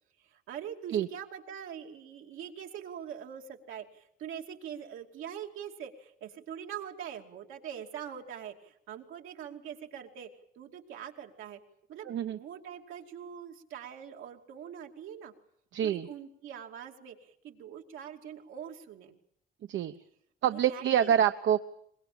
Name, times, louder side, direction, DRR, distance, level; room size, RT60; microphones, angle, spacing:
voice 1, 0.2-10.3 10.6-11.6 11.9-15.3 15.8-19.2 20.5-21.1, right 9 dB, 90° right, 2 dB, 2.7 m, -43 dB
voice 2, 12.1-12.4 15.7-16.1 19.7-20.0 20.4-21.6, right 10 dB, 70° right, 8 dB, 0.9 m, -26 dB
23.5 x 21.0 x 8.7 m, 0.72 s
cardioid pair, 90°, 20 cm